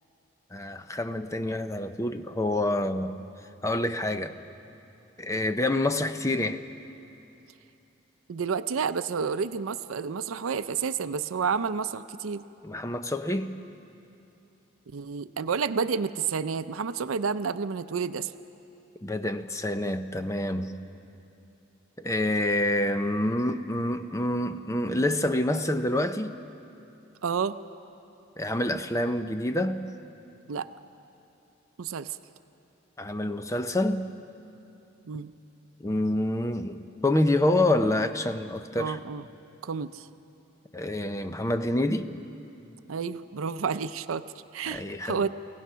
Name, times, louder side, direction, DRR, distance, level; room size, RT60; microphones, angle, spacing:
voice 1, 0.5-3.1 3.6-4.3 5.2-6.6 12.6-13.6 19.0-20.7 22.0-26.3 28.4-29.9 33.0-34.1 35.8-39.0 40.7-42.1 44.7-45.2, left 1 dB, 15° left, 0.6 m, -27 dB
voice 2, 8.3-12.4 14.9-18.3 27.2-27.6 30.5-30.7 31.8-32.2 35.1-35.3 38.8-39.2 39.6-40.1 42.9-44.2 44.5-45.3, right 6 dB, 90° right, 0.5 m, -30 dB
29.5 x 17.0 x 5.7 m
head